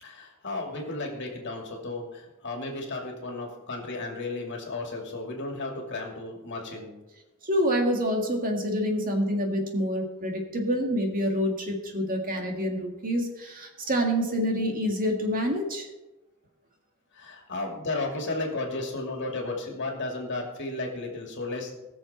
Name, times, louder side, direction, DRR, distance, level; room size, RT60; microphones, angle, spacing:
voice 1, 0.0-6.9 17.1-21.7, left 2 dB, 55° left, 1 dB, 2.5 m, -34 dB
voice 2, 7.4-15.9, equal, 40° right, 2 dB, 1.9 m, -27 dB
20.0 x 6.8 x 4.4 m, 1.0 s
head